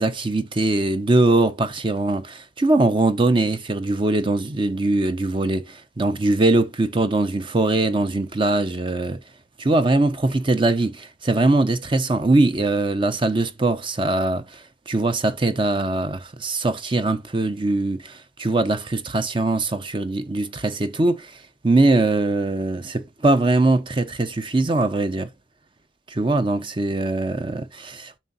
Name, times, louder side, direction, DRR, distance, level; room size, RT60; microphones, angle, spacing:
voice 1, 0.0-9.2 9.6-21.3 21.6-25.3 26.1-28.2, right 2 dB, 30° right, 0.6 m, -21 dB
7.4 x 5.4 x 2.6 m
head